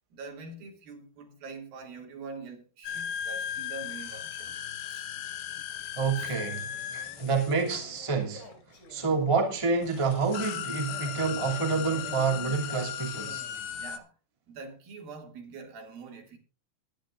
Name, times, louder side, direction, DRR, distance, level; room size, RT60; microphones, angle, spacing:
voice 1, 0.1-4.5 4.9-5.2 6.2-6.4 13.7-14.1 14.5-16.4, right 4 dB, 70° right, 4.3 m, -44 dB
sound 1, 2.8-8.6 9.4-9.5 9.8-14.0, left 10 dB, 85° left, 2.9 m, -37 dB
voice 2, 6.0-8.5 8.9-13.4, right 4 dB, 10° right, 2.0 m, -28 dB
Male speech man speaking, 6.3-9.3 10.9-13.9, left 2 dB, 50° left, 4.5 m, -49 dB
21.5 x 10.0 x 2.5 m
omnidirectional pair, 4.3 m